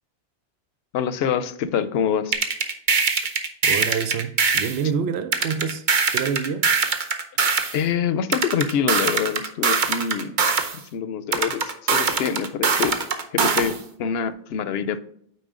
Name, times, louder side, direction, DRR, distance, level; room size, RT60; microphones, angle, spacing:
voice 1, 0.9-2.4 7.7-10.4 10.7-12.9 13.3-15.0, left 7 dB, 75° left, 0.8 m, -25 dB
sound 1, 2.3-4.8 5.3-7.8 8.3-10.8 11.3-13.8, right 5 dB, 55° right, 0.9 m, -22 dB
voice 2, 3.6-5.9 6.1-6.7, right 6 dB, 80° right, 0.9 m, -27 dB
9.2 x 4.4 x 3.6 m
omnidirectional pair, 1.0 m